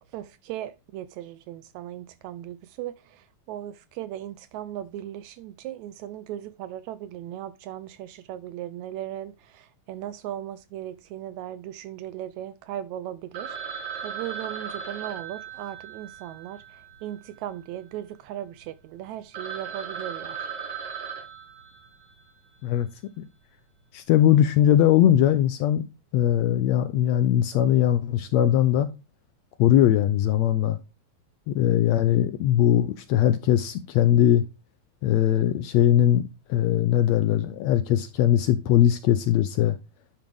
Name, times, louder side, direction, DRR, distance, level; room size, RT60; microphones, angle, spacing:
voice 1, 0.0-20.5, right 12 dB, 80° right, 1.7 m, -37 dB
Telephone, 13.3-17.7 18.0-18.1 18.6-18.7 19.0-19.1 19.3-22.3, right 7 dB, 45° right, 2.1 m, -37 dB
voice 2, 23.9-25.8 26.1-28.9 29.6-30.8 31.5-34.4 35.0-36.2 36.5-39.8, left 11 dB, 80° left, 1.6 m, -20 dB
10.5 x 5.3 x 3.5 m
omnidirectional pair, 3.6 m